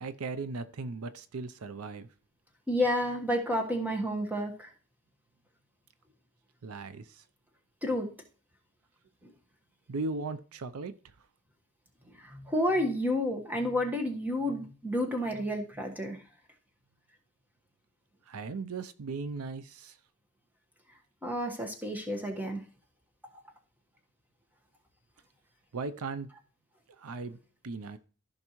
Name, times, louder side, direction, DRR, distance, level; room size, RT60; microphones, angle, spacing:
voice 1, 0.0-2.1 6.6-7.2 9.9-10.9 18.3-20.0 25.7-26.3 27.0-27.4 27.6-28.0, right 3 dB, 75° right, 0.5 m, -37 dB
voice 2, 2.7-4.7 7.8-8.1 9.2-9.3 12.2-16.2 21.2-22.6, left 1 dB, 10° right, 1.3 m, -30 dB
14.5 x 5.3 x 3.0 m
head